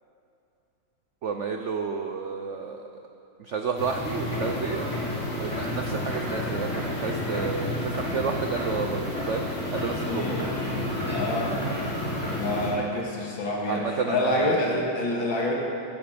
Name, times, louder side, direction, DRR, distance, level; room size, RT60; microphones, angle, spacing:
voice 1, 1.2-2.9 3.4-4.9 5.4-9.5 9.7-10.3 13.7-14.6, right 5 dB, 75° right, 4 dB, 0.6 m, -31 dB
sound 1, 3.8-12.7, left 1 dB, 40° left, 4.4 m, -30 dB
voice 2, 10.1-10.4 11.1-11.6 12.3-15.5, left 1 dB, 80° left, -2 dB, 2.7 m, -27 dB
16.5 x 10.5 x 5.2 m, 2.7 s
omnidirectional pair, 2.1 m